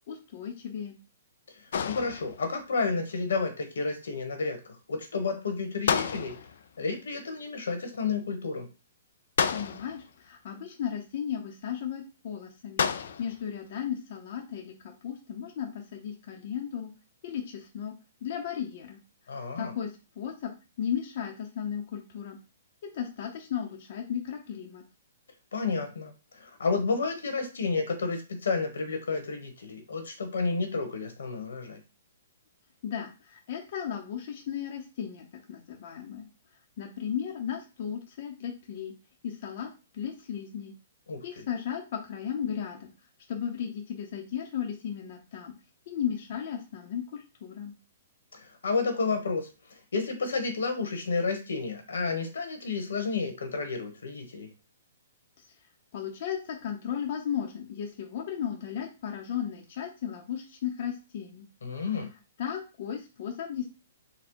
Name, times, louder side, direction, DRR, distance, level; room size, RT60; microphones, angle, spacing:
voice 1, 0.1-1.0 9.5-12.8 13.2-16.9 17.2-18.0 18.2-19.0 19.6-19.9 20.2-20.5 20.8-22.4 22.8-24.8 32.8-36.3 36.8-38.9 39.2-40.7 41.2-42.9 43.3-45.5 45.9-47.7 55.9-61.4 62.4-63.7, left 8 dB, 45° left, 1 dB, 0.8 m, -35 dB
voice 2, 1.5-4.6 4.9-6.3 6.8-8.7 19.3-19.7 25.5-31.8 41.1-41.5 48.3-49.5 49.9-54.5 61.6-62.1, left 4 dB, 85° left, 6 dB, 1.3 m, -31 dB
sound 1, 1.7-2.6 5.9-6.7 9.4-10.1 12.8-13.4, left 7 dB, 65° left, 0.4 m, -30 dB
4.2 x 2.3 x 4.6 m, 0.31 s
hypercardioid pair, 160°, 0 cm